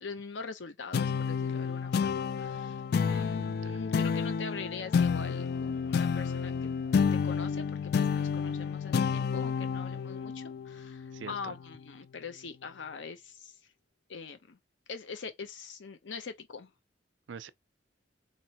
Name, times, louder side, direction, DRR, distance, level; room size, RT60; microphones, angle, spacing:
voice 1, 0.0-2.8 3.0-6.7 7.1-13.5 14.1-14.6 14.9-16.7, left 5 dB, 85° left, 0.7 m, -43 dB
sound 1, 0.9-11.8, left 6 dB, 60° left, 0.3 m, -30 dB
voice 2, 3.0-3.8 11.1-11.5 17.3-17.5, right 6 dB, 85° right, 0.5 m, -45 dB
4.1 x 2.9 x 2.8 m
head